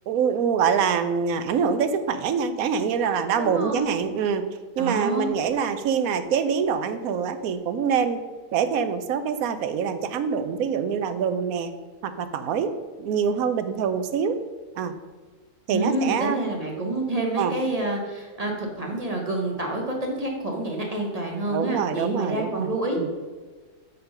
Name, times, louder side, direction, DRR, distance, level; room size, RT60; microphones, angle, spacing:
voice 1, 0.1-4.4 4.8-8.2 8.5-11.7 12.0-12.7 13.0-14.4 14.8-14.9 15.7-16.4 17.4-17.6 21.5-23.1, right 6 dB, 70° right, 10 dB, 1.0 m, -25 dB
voice 2, 3.4-3.9 4.8-5.3 15.7-23.2, right 2 dB, 30° right, 0 dB, 1.0 m, -28 dB
7.8 x 3.7 x 5.5 m, 1.4 s
omnidirectional pair, 1.6 m